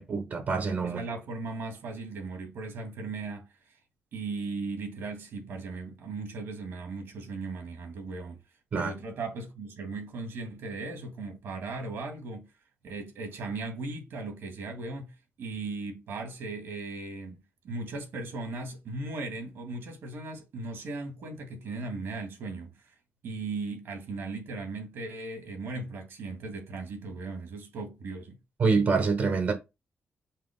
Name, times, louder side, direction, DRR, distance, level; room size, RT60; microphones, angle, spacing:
voice 1, 0.0-1.0 8.7-8.9 28.6-29.5, right 4 dB, 50° right, 1.2 m, -26 dB
voice 2, 0.8-3.8 4.1-8.4 8.7-12.5 12.8-22.9 23.2-28.4, right 3 dB, 75° right, 2.3 m, -37 dB
5.7 x 4.7 x 3.7 m
wide cardioid pair, 165°, 4 cm